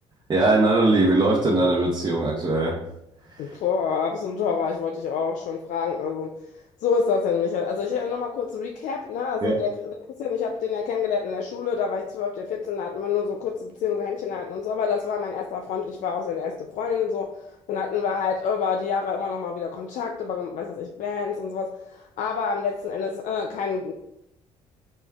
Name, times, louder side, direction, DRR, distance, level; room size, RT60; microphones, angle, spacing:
voice 1, 0.3-2.8 3.3-3.5 9.4-9.6, right 2 dB, 30° right, -5 dB, 1.0 m, -20 dB
voice 2, 3.4-6.3 6.8-23.9, left 6 dB, 65° left, 3 dB, 0.4 m, -27 dB
4.2 x 3.5 x 2.3 m, 0.82 s
hypercardioid pair, 55°, 14 cm